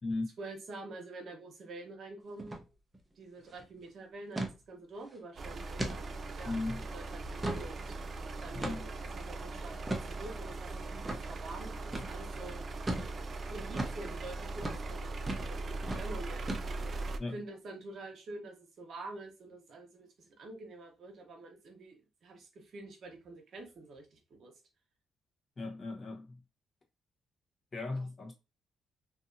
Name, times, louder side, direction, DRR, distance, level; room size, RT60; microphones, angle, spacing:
voice 1, 0.4-2.6 3.2-8.0 8.4-8.9 9.2-12.6 13.5-16.8 17.1-24.5 27.9-28.1, right 2 dB, 60° right, 0.9 m, -47 dB
sound 1, 2.4-2.6 2.9-3.0 3.4-3.7 4.4-4.6 5.0-5.2 5.8-6.0 6.5-6.6 7.1-7.7 8.6-9.0 9.9-10.1 11.1-11.2 11.9-12.1 12.9-13.1 13.8-14.0 14.6-14.8 15.3-15.5 15.8-16.1 16.5-16.9, right 1 dB, 15° right, 0.7 m, -36 dB
sound 2, 5.4-17.2, right 2 dB, 40° right, 0.3 m, -40 dB
voice 2, 6.4-6.8 8.5-8.9 17.2-17.3 25.6-26.4 27.7-28.3, left 2 dB, 30° left, 0.9 m, -37 dB
2.7 x 2.6 x 2.6 m
cardioid pair, 90°, 0 cm